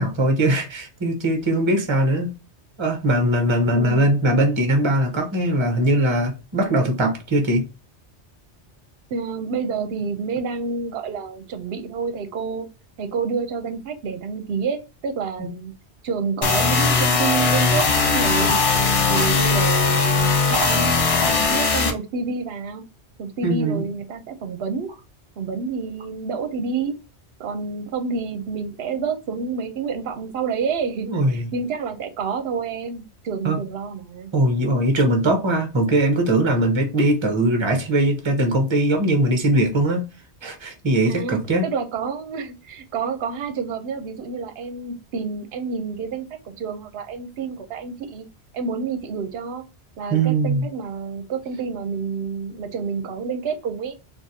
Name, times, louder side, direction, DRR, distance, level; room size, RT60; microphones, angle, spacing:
voice 1, 0.0-2.3 2.8-7.7 15.4-15.5 23.4-23.8 31.1-31.5 33.4-33.6 34.3-40.1 40.4-41.7 50.1-50.7, right 1 dB, 30° right, 0.8 m, -20 dB
voice 2, 3.7-4.1 9.1-12.7 13.0-15.7 16.0-18.6 19.1-20.9 21.2-22.8 23.2-24.9 25.4-27.0 27.4-34.3 41.0-48.3 48.5-49.6 50.0-54.0, right 5 dB, 65° right, 0.9 m, -28 dB
sound 1, 16.4-21.9, left 4 dB, 45° left, 0.5 m, -19 dB
3.9 x 2.6 x 2.7 m
omnidirectional pair, 1.1 m